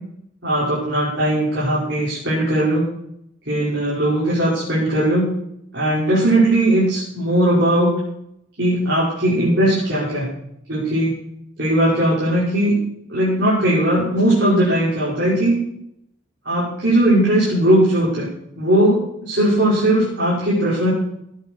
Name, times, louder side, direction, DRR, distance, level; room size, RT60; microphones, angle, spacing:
voice 1, 0.4-2.9 3.5-5.3 5.7-8.0 8.6-10.3 10.7-11.1 11.6-12.8 13.1-15.6 16.4-18.3 18.5-20.9, right 1 dB, 65° right, -8 dB, 5.8 m, -18 dB
16.5 x 10.0 x 4.7 m, 0.74 s
head